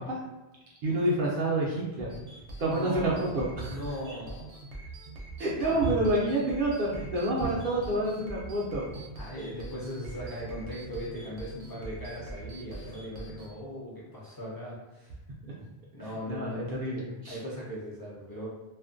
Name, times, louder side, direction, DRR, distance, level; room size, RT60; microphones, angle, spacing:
voice 1, 0.8-2.1 2.6-3.8 5.4-8.9 16.0-17.4, right 1 dB, 60° right, -4 dB, 0.6 m, -28 dB
sound 1, 2.1-13.5, right 2 dB, 85° right, 0.9 m, -44 dB
voice 2, 2.6-4.5 5.6-5.9 9.2-15.2 15.6-15.7 15.9-16.7 17.3-18.5, equal, 30° left, -8 dB, 0.4 m, -38 dB
2.4 x 2.1 x 2.4 m, 1.1 s
omnidirectional pair, 1.1 m